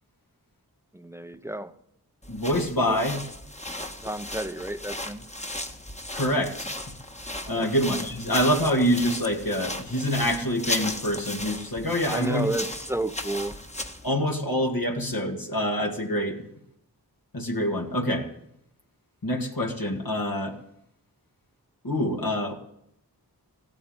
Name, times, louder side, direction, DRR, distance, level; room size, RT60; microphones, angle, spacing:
voice 1, 0.9-1.7 2.9-3.0 4.0-5.2 7.5-7.7 12.1-13.6, right 1 dB, 5° right, 11 dB, 0.9 m, -31 dB
sound 1, 2.2-14.1, left 1 dB, 15° left, 1.5 m, -36 dB
voice 2, 2.3-3.2 6.1-6.7 7.5-12.5 14.0-16.4 17.3-18.3 19.2-20.6 21.8-22.5, equal, 60° left, 0 dB, 2.2 m, -26 dB
16.0 x 8.7 x 8.9 m, 0.76 s
wide cardioid pair, 50°, 40 cm